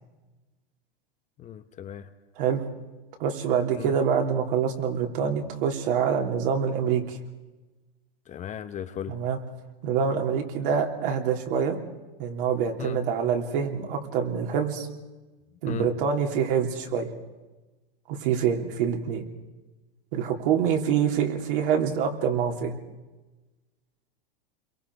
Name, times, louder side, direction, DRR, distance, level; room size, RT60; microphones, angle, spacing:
voice 1, 1.4-2.1 3.7-4.0 8.3-9.2 12.8-13.0 15.7-15.9, left 10 dB, 25° left, 0.9 m, -36 dB
voice 2, 3.2-7.2 9.1-9.4 9.8-11.8 12.2-14.9 15.6-17.1 18.1-19.2 20.1-22.7, right 7 dB, 60° right, 3.4 m, -26 dB
29.0 x 23.0 x 4.8 m
hypercardioid pair, 130°, 30 cm